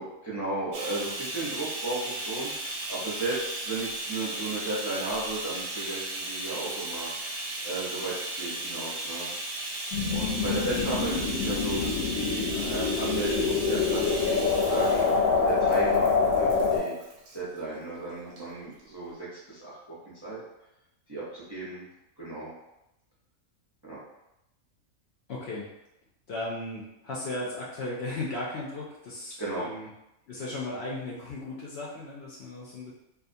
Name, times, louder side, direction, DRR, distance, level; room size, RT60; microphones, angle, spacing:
voice 1, 0.0-9.3 10.1-15.1 15.4-17.0 17.3-20.0 20.2-20.4 21.1-21.8 22.2-22.5 23.8-24.0 29.4-29.7, right 2 dB, 30° right, -9 dB, 0.5 m, -35 dB
Bathtub (filling or washing), 0.7-17.4 18.3-18.4 18.8-18.9, right 1 dB, 65° right, 0.7 m, -36 dB
sound 1, 9.9-16.8, left 5 dB, 85° left, 1.0 m, -26 dB
voice 2, 25.3-25.7 26.3-29.9 30.3-32.9, left 2 dB, 65° left, -5 dB, 0.7 m, -36 dB
2.5 x 2.3 x 2.6 m, 0.89 s
omnidirectional pair, 1.4 m